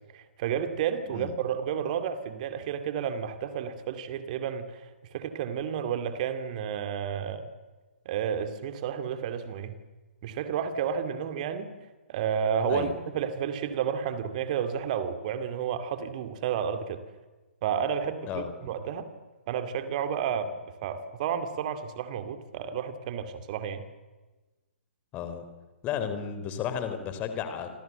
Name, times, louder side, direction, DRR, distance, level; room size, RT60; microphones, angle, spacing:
voice 1, 0.1-4.8 5.1-7.5 8.1-9.7 10.2-11.7 12.1-12.9 13.1-17.0 17.6-19.1 19.5-20.5 20.8-23.8, right 8 dB, 35° right, 9 dB, 2.4 m, -31 dB
voice 2, 25.1-25.4 25.8-27.7, left 8 dB, 20° left, 9 dB, 3.7 m, -33 dB
27.5 x 26.5 x 8.0 m, 1.2 s
figure-of-eight pair, 125°, 7 cm